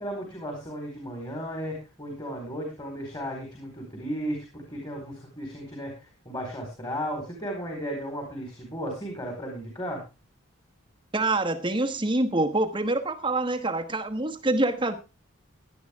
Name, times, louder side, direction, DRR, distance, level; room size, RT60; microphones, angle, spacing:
voice 1, 0.0-10.0, equal, 20° left, 4.4 m, -35 dB
voice 2, 11.1-15.0, right 2 dB, 25° right, 1.2 m, -26 dB
17.5 x 11.5 x 3.5 m
head